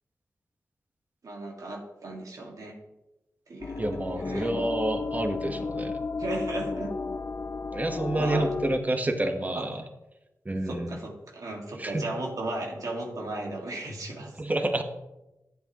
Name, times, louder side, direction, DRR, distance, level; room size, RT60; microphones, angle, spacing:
voice 1, 1.2-2.8 3.5-3.8 4.2-4.5 6.2-6.9 8.1-8.5 9.5-9.7 10.7-14.3, right 2 dB, 70° right, 0 dB, 2.0 m, -35 dB
sound 1, 3.6-8.8, left 4 dB, 45° left, 0.4 m, -33 dB
voice 2, 3.8-6.0 7.7-9.8 10.4-11.0 11.8-12.1 14.4-14.8, right 1 dB, 25° right, 6 dB, 1.2 m, -29 dB
13.0 x 8.2 x 3.0 m, 0.97 s
cardioid pair, 55°, 6 cm